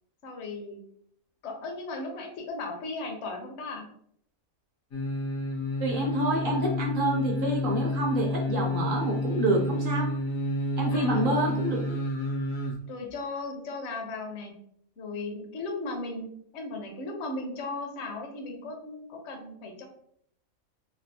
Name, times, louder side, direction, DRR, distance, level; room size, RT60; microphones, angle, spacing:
voice 1, 0.2-0.8 1.4-3.8 10.9-11.6 12.9-14.5 15.0-19.9, left 3 dB, 60° left, 2 dB, 0.9 m, -36 dB
sound 1, 4.9-12.8 13.1-13.2, left 1 dB, 75° left, 1.2 m, -30 dB
voice 2, 5.8-10.1 10.8-11.8, right 1 dB, 60° right, -1 dB, 0.5 m, -27 dB
3.3 x 2.4 x 2.6 m, 0.67 s
omnidirectional pair, 1.5 m